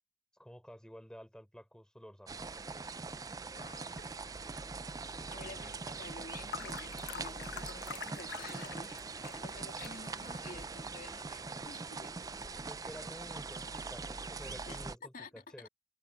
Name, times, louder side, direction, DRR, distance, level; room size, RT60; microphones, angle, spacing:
voice 1, 0.3-2.4 5.2-5.7 12.7-15.7, equal, 5° left, 4.7 m, -51 dB
sound 1, 2.3-15.0, right 4 dB, 20° right, 0.4 m, -42 dB
voice 2, 3.6-4.0 5.3-12.1 14.7-15.7, left 3 dB, 50° left, 2.6 m, -51 dB
sound 2, 3.9-12.6, left 6 dB, 65° left, 0.9 m, -49 dB
head